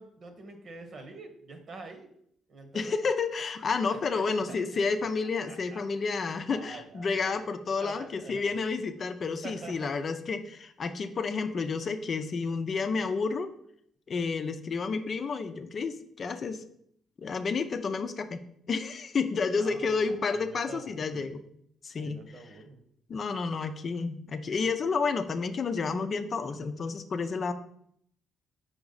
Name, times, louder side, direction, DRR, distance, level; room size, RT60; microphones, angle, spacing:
voice 1, 0.0-2.1 2.5-3.1 3.8-5.1 5.5-5.8 6.4-8.4 9.4-9.9 19.6-21.3 21.9-22.8, right 3 dB, 50° right, 6 dB, 1.2 m, -46 dB
voice 2, 2.7-13.5 14.1-16.6 17.2-18.4 18.7-21.4 21.8-22.2 23.1-27.5, left 4 dB, 50° left, 8 dB, 0.5 m, -30 dB
5.2 x 4.7 x 4.0 m, 0.68 s
supercardioid pair, 70°, 0 cm